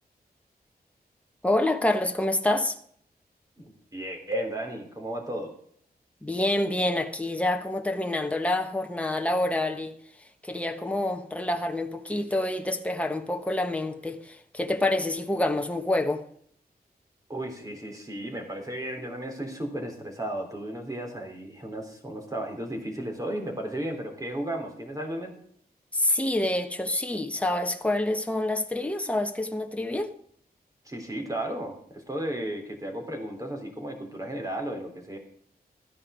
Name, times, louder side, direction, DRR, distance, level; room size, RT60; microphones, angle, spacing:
voice 1, 1.4-2.8 6.2-10.0 10.4-16.2 25.9-30.1, left 1 dB, 10° left, 1.3 m, -27 dB
voice 2, 3.6-5.5 17.3-25.3 30.9-35.2, right 1 dB, 20° right, 3.6 m, -34 dB
13.0 x 10.0 x 5.0 m
wide cardioid pair, 120°, 16 cm